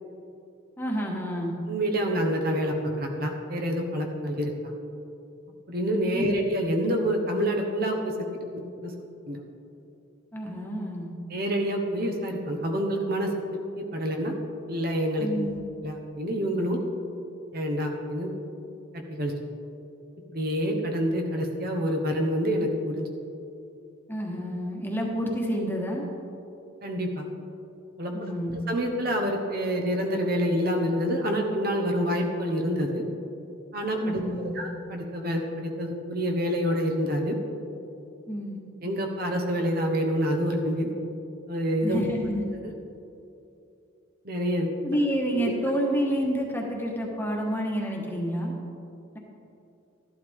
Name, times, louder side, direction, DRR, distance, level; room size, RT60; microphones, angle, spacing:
voice 1, 0.8-1.5 6.1-6.4 10.3-11.1 15.2-15.6 24.1-26.0 28.1-28.5 34.0-34.6 38.3-38.6 41.8-42.4 44.8-48.5, equal, 10° left, -1 dB, 1.4 m, -29 dB
voice 2, 1.7-4.7 5.7-8.1 8.5-8.9 9.3-9.4 11.3-14.3 14.7-15.3 15.8-16.8 17.5-18.3 18.9-19.3 20.3-23.1 26.8-27.3 28.0-28.1 28.7-33.0 33.7-37.4 38.8-40.9 41.5-42.0 44.2-44.7 45.4-45.5, equal, 50° right, 3 dB, 1.1 m, -27 dB
13.0 x 11.5 x 3.6 m, 2.7 s
head